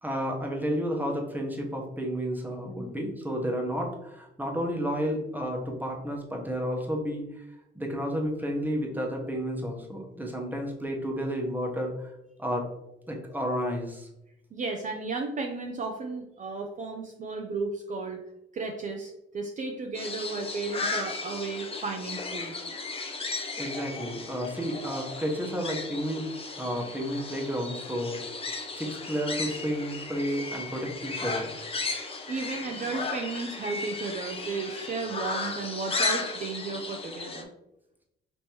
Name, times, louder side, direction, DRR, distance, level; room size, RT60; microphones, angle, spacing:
voice 1, 0.0-7.5 7.7-12.1 12.4-12.7 13.1-14.1 23.6-26.3 26.6-28.2 28.8-31.5, equal, 10° right, 0 dB, 1.0 m, -31 dB
voice 2, 14.5-18.2 18.5-22.5 32.3-37.5, right 4 dB, 40° right, 3 dB, 0.5 m, -34 dB
sound 1, 19.9-37.4, left 3 dB, 30° left, 0.6 m, -35 dB
5.2 x 3.0 x 3.0 m, 0.88 s
cardioid pair, 90°, 20 cm